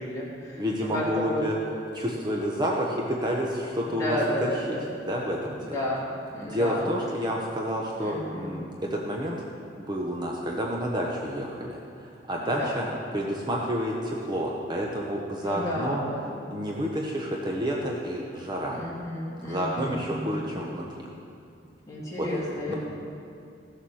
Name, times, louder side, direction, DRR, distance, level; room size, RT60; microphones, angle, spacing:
voice 1, 0.0-0.6 0.9-1.5 3.9-4.8 5.6-6.9 8.0-8.5 12.4-12.8 15.4-16.6 18.7-20.4 21.9-22.8, equal, 20° left, -7 dB, 3.0 m, -32 dB
voice 2, 0.6-1.5 1.9-4.8 5.0-5.8 6.4-9.4 9.8-12.8 13.1-16.0 16.5-18.8 19.4-21.1 22.2-22.3 22.7-22.8, equal, 25° right, -2 dB, 1.0 m, -29 dB
15.5 x 7.2 x 6.3 m, 2.5 s
head